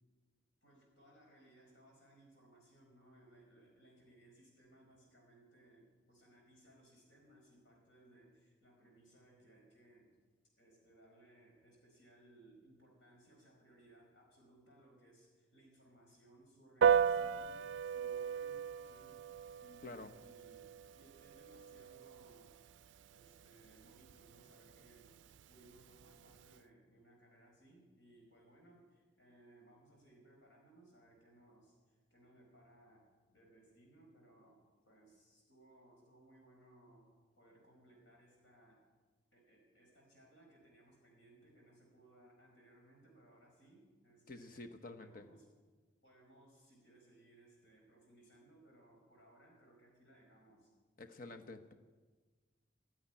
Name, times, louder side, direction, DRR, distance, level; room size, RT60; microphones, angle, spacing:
voice 1, 0.6-10.1 10.6-19.2 19.6-22.5 23.1-25.1 25.5-38.8 39.3-44.7 44.9-45.5 46.0-50.7, right 1 dB, 75° left, 0 dB, 4.6 m, -64 dB
Piano, 16.8-26.6, right 7 dB, 75° right, 0.4 m, -37 dB
voice 2, 44.3-45.3 51.0-51.7, left 2 dB, 45° left, 7 dB, 1.0 m, -49 dB
12.5 x 10.0 x 9.8 m, 1.4 s
head